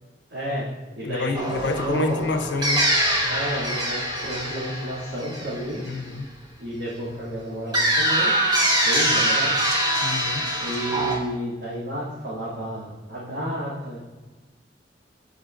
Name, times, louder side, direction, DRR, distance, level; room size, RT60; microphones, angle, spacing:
voice 1, 0.3-0.7 1.0-2.3 3.3-5.8 6.6-8.3 8.8-9.6 10.6-14.0, right 1 dB, 85° right, -10 dB, 2.3 m, -31 dB
voice 2, 1.0-2.8 5.9-6.3 10.0-10.4, left 3 dB, 85° left, 9 dB, 0.6 m, -28 dB
sound 1, 1.3-6.2 7.7-11.2, right 1 dB, 25° right, 1.2 m, -24 dB
13.0 x 5.1 x 2.5 m, 1.3 s
head